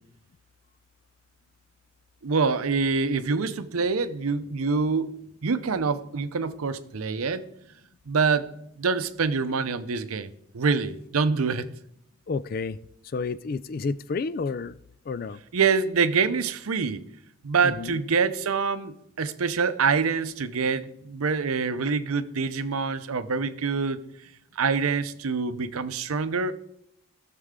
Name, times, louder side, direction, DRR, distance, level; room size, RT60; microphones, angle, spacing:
voice 1, 2.2-5.1 5.4-7.4 8.1-8.5 8.8-10.3 10.5-11.7 15.5-17.0 17.4-24.0 24.6-26.5, right 5 dB, 85° right, 13 dB, 0.6 m, -25 dB
voice 2, 12.3-12.8 13.0-14.7 15.1-15.4 17.6-18.0, left 4 dB, 45° left, 16 dB, 0.3 m, -30 dB
16.0 x 6.6 x 3.7 m, 0.75 s
head